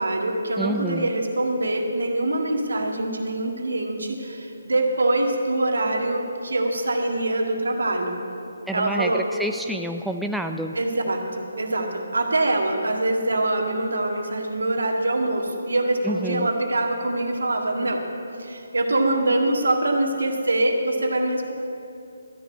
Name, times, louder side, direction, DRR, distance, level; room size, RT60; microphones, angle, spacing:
voice 1, 0.0-8.1 8.7-9.3 10.7-18.0 18.4-21.5, right 2 dB, 80° right, 2 dB, 1.8 m, -24 dB
voice 2, 0.6-1.1 8.7-10.7 16.0-16.5, right 1 dB, ahead, 4 dB, 0.4 m, -28 dB
13.0 x 6.9 x 8.7 m, 2.7 s
figure-of-eight pair, 150°, 0 cm